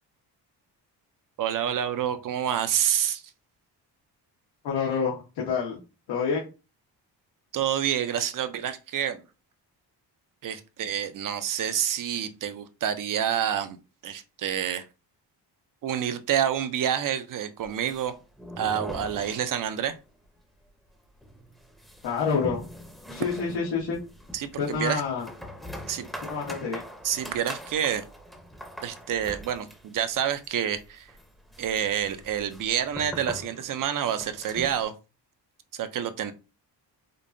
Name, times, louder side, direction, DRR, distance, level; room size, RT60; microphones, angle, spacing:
voice 1, 1.4-3.2 7.5-9.2 10.4-13.8 14.0-14.8 15.8-18.1 18.6-20.0 24.3-25.0 25.9-26.1 27.0-28.0 28.8-31.1 31.6-34.9 35.7-36.3, right 9 dB, 50° right, 10 dB, 0.5 m, -28 dB
voice 2, 4.6-5.8 6.1-6.5 22.0-22.6 23.1-24.0 24.6-25.3 26.3-26.8, left 5 dB, 85° left, -4 dB, 1.2 m, -28 dB
sound 1, 17.6-20.0 20.2-20.3 20.7-20.8 21.2-34.8, equal, ahead, 0.6 m, -42 dB
5.2 x 2.1 x 2.6 m, 0.30 s
cardioid pair, 120°, 40 cm